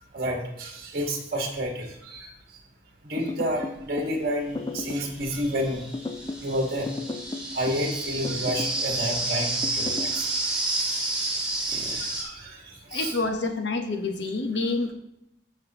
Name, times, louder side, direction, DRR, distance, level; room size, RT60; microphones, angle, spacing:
voice 1, 0.1-2.3 3.0-5.8 6.4-6.9 7.5-10.3 11.7-12.6 12.9-13.1, equal, 50° right, 1 dB, 1.7 m, -30 dB
sound 1, 3.2-4.2 4.5-5.1 5.9-6.5 6.9-7.9 8.2-8.8 9.6-10.1, left 3 dB, 25° left, 0.5 m, -34 dB
sound 2, 3.8-3.9 4.8-12.2, right 2 dB, 5° right, 1.6 m, -30 dB
voice 2, 12.9-14.9, left 3 dB, 65° left, 4 dB, 1.1 m, -27 dB
14.0 x 5.8 x 3.0 m, 0.82 s
head